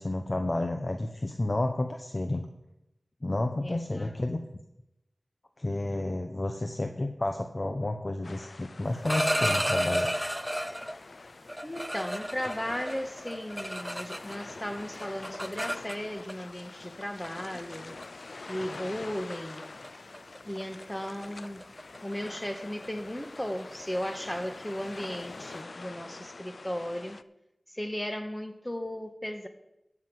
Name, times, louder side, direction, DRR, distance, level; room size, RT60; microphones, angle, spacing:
voice 1, 0.0-2.5 3.2-4.4 5.6-10.1, left 2 dB, 45° left, 0.9 m, -31 dB
voice 2, 3.6-4.2 11.6-17.9 18.5-19.6 20.4-21.7 22.0-27.2 27.7-29.5, equal, 15° left, 1.6 m, -36 dB
sound 1, 8.2-27.2, left 3 dB, 80° left, 0.4 m, -46 dB
sound 2, 8.9-11.0 11.5-14.5 14.8-16.3 17.2-17.4 17.7-18.1 18.5-18.8 19.1-19.3 19.6-19.9 20.1-25.5, equal, ahead, 0.4 m, -33 dB
13.5 x 6.1 x 7.6 m
cardioid pair, 40°, 0 cm